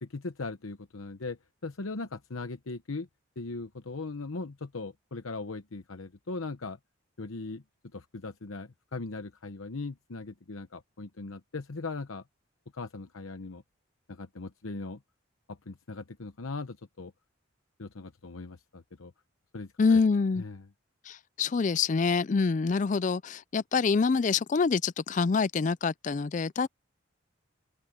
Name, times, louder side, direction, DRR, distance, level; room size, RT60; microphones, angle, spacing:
voice 1, 0.0-3.1 3.4-6.8 7.2-7.6 7.9-12.2 12.7-13.6 14.1-15.0 15.5-17.1 17.8-19.1 19.5-20.0 20.4-20.6, left 3 dB, 85° left, 0.9 m, -39 dB
voice 2, 19.8-20.4 21.1-26.7, left 4 dB, 35° left, 0.4 m, -26 dB
head